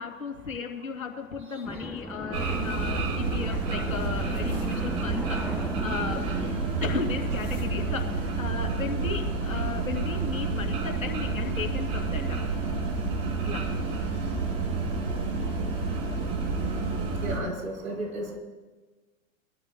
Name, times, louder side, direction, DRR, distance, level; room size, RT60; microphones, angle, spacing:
voice 1, 0.0-6.3 6.8-12.4 13.4-13.8, left 5 dB, 85° left, 2 dB, 2.8 m, -35 dB
sound 1, 1.6-9.1, equal, ahead, 0.3 m, -38 dB
sound 2, 2.3-17.4, right 4 dB, 50° right, 5.0 m, -29 dB
voice 2, 17.2-18.4, right 1 dB, 85° right, 0 dB, 3.9 m, -33 dB
24.0 x 13.5 x 2.3 m, 1.3 s
figure-of-eight pair, 100°, 40 cm